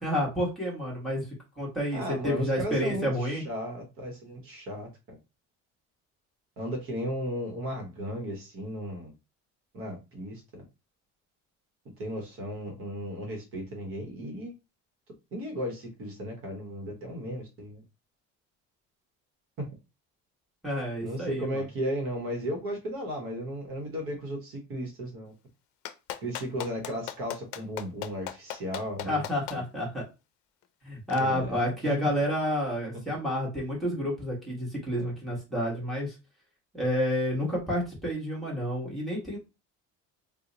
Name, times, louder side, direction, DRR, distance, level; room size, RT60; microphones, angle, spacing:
voice 1, 0.0-1.3 1.6-3.4 20.6-21.6 29.0-30.0 30.8-36.1 36.7-39.4, equal, ahead, 1.3 m, -29 dB
voice 2, 1.9-5.2 6.6-9.1 9.7-10.6 12.0-14.5 15.3-17.8 21.0-25.3 26.2-29.2 31.2-31.9 33.1-33.2 35.0-35.1, equal, 50° right, 0.9 m, -35 dB
Clapping, 25.8-29.6 31.1-31.2, left 12 dB, 80° left, 0.5 m, -37 dB
2.8 x 2.1 x 3.8 m
cardioid pair, 175°, 29 cm